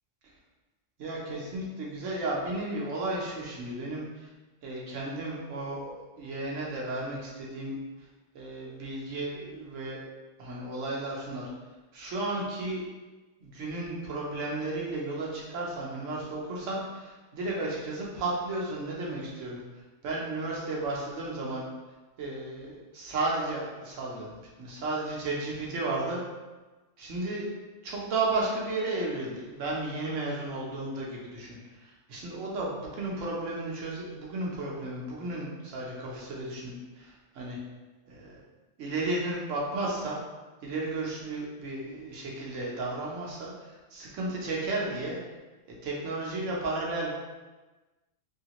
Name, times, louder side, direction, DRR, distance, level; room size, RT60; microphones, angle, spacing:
voice 1, 1.0-4.3 4.6-7.8 8.3-10.0 10.4-11.5 11.9-12.8 13.4-19.6 20.0-21.7 22.2-26.2 27.0-27.5 27.8-37.6 38.1-38.4 38.8-40.2 40.6-45.2 45.7-47.1, right 2 dB, 75° right, -4 dB, 1.2 m, -33 dB
3.2 x 2.8 x 2.9 m, 1.2 s
omnidirectional pair, 1.3 m